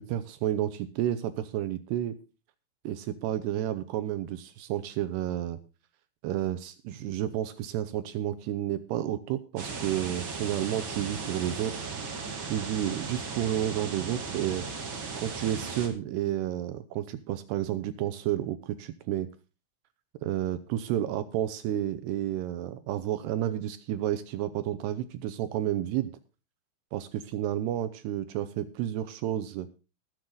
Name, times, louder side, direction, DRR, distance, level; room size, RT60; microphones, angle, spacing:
voice 1, 0.0-2.2 2.8-5.6 6.2-11.8 12.5-14.7 15.2-19.3 20.2-26.1 26.9-29.7, right 12 dB, 80° right, 12 dB, 2.4 m, -31 dB
sound 1, 9.6-15.9, right 4 dB, 45° right, 1.7 m, -36 dB
20.0 x 7.7 x 3.9 m, 0.33 s
omnidirectional pair, 5.4 m